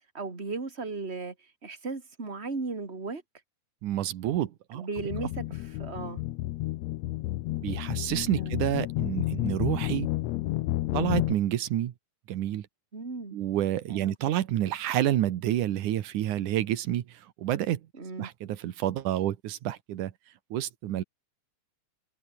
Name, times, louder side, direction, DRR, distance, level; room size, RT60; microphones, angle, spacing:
voice 1, 0.1-3.2 4.7-6.2 8.3-8.6 12.9-13.4 13.9-14.1 17.9-18.3, right 3 dB, 20° right, 3.4 m, -36 dB
voice 2, 3.8-4.9 7.6-10.1 10.9-11.9 12.3-12.7 13.3-17.8 18.2-20.1 20.5-21.0, right 12 dB, 85° right, 2.8 m, -29 dB
sound 1, 5.0-11.4, left 17 dB, 75° left, 1.8 m, -31 dB
open air
omnidirectional pair, 3.4 m